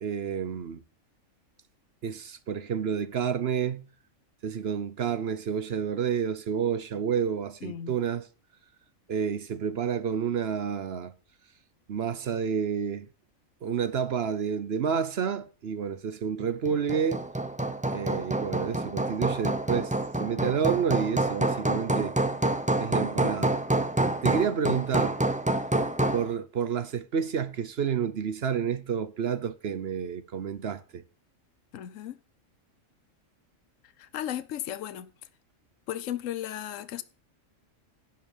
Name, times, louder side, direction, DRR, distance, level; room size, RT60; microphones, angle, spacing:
voice 1, 0.0-0.8 2.0-3.9 4.4-8.3 9.1-11.1 11.9-13.1 13.6-17.2 17.9-19.9 20.2-22.1 22.8-23.6 24.2-25.2 26.1-31.0, right 7 dB, 55° right, 0.9 m, -29 dB
voice 2, 7.6-8.0 31.7-32.2 34.0-35.1 35.9-37.0, left 11 dB, 70° left, 1.1 m, -35 dB
Hammer, 16.7-26.3, right 2 dB, 10° right, 0.5 m, -27 dB
11.0 x 5.8 x 7.1 m
omnidirectional pair, 1.4 m